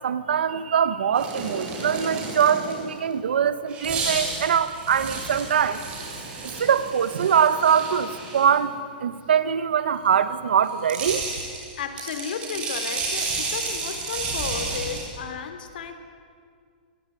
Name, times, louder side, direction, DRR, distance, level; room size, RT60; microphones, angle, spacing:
voice 1, 0.0-5.8 6.4-11.2, right 8 dB, 90° right, 12 dB, 1.7 m, -23 dB
sound 1, 1.1-2.9 3.7-8.5 10.6-15.0, right 3 dB, 20° right, 6.3 m, -32 dB
voice 2, 11.8-16.0, left 6 dB, 65° left, 8 dB, 3.7 m, -33 dB
28.0 x 21.0 x 9.6 m, 2.1 s
hypercardioid pair, 165°, 5 cm